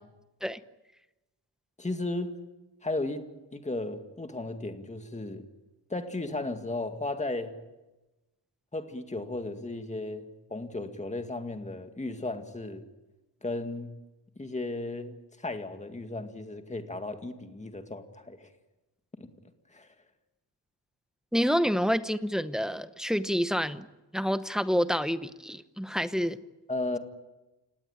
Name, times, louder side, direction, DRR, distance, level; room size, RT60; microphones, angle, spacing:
voice 1, 1.8-2.4 2.8-3.2 3.5-5.4 5.9-7.5 8.7-12.8 13.4-13.9 14.4-15.2 15.4-18.5 19.2-19.3 19.7-19.9 26.7-27.0, left 2 dB, 15° left, 6 dB, 2.2 m, -35 dB
voice 2, 21.3-23.9 24.1-26.4, equal, ahead, 11 dB, 0.9 m, -28 dB
29.5 x 18.0 x 8.9 m, 1.1 s
wide cardioid pair, 150°, 42 cm